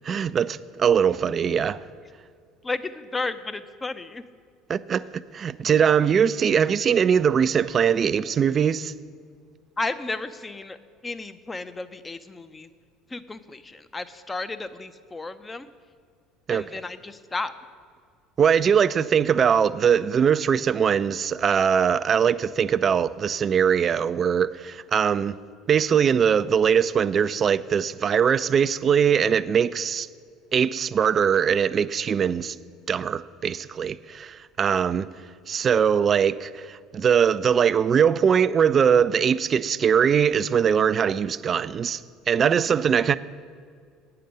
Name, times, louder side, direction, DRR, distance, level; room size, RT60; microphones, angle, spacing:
voice 1, 0.0-1.8 4.7-8.9 16.5-16.6 18.4-25.4 25.7-30.1 30.5-32.6 32.9-35.1 35.5-42.0 42.3-43.2, right 7 dB, 35° right, 0.3 m, -21 dB
voice 2, 2.6-4.2 9.8-10.8 11.0-12.7 13.1-15.7 16.5-17.5, left 3 dB, 20° left, 0.6 m, -33 dB
9.2 x 6.7 x 7.5 m
figure-of-eight pair, 65°, 0 cm